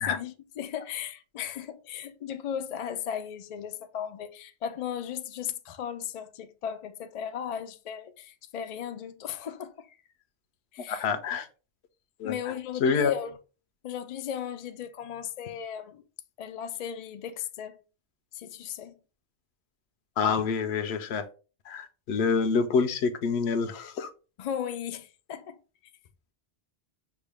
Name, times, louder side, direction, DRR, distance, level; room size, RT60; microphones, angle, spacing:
voice 1, 0.1-10.0 10.7-11.0 12.2-13.3 13.8-16.0 16.4-17.8 18.3-18.9 24.4-25.6, left 9 dB, 60° left, 0.4 m, -36 dB
voice 2, 10.9-11.5 12.2-12.5 12.8-13.2 20.2-21.3 21.7-24.1, left 5 dB, 75° left, 0.9 m, -27 dB
6.0 x 2.2 x 3.4 m
omnidirectional pair, 1.1 m